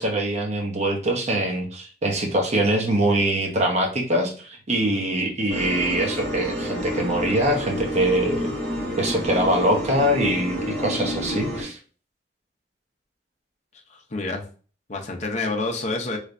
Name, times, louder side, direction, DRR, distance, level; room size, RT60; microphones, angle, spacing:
voice 1, 0.0-8.5 9.0-11.8, right 1 dB, 40° right, 2 dB, 0.8 m, -23 dB
sound 1, 5.5-11.6, equal, 10° left, 1.3 m, -29 dB
voice 2, 13.9-14.4 14.9-16.2, left 3 dB, 40° left, 2 dB, 0.6 m, -28 dB
3.2 x 3.1 x 2.5 m, 0.39 s
head